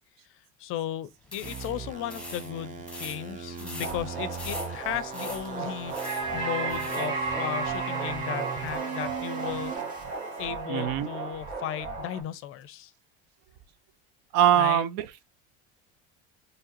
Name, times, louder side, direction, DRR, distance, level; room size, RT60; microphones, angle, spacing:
voice 1, 0.6-9.7 10.4-12.9 14.5-14.8, left 11 dB, 50° left, 0.5 m, -35 dB
sound 1, 1.2-7.1, left 2 dB, 5° left, 1.1 m, -43 dB
sound 2, 1.4-10.4, right 6 dB, 25° right, 0.8 m, -39 dB
sound 3, 3.8-12.2, right 4 dB, 45° right, 2.3 m, -34 dB
voice 2, 10.7-11.1 14.3-15.3, right 10 dB, 65° right, 0.6 m, -23 dB
4.7 x 3.2 x 3.0 m
cardioid pair, 145°, 29 cm